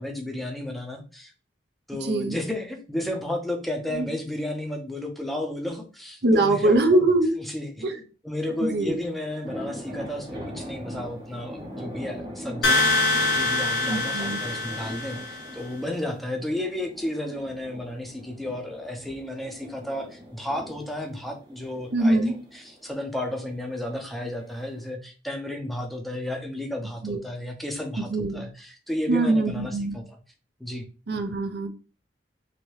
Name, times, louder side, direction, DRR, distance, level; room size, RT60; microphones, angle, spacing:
voice 1, 0.0-1.3 1.9-7.0 7.4-8.0 8.2-30.0 30.6-30.9, left 1 dB, ahead, 0.5 m, -33 dB
voice 2, 2.0-2.4 3.9-4.1 6.2-7.3 7.8-8.0 8.6-8.9 13.9-14.4 21.9-22.3 27.0-27.2 28.0-28.4 29.1-30.0 31.1-31.7, right 2 dB, 65° right, 0.6 m, -22 dB
sound 1, 8.5-24.8, equal, 25° right, 0.9 m, -42 dB
sound 2, 12.6-15.5, left 2 dB, 90° left, 0.9 m, -24 dB
3.0 x 2.6 x 3.1 m
head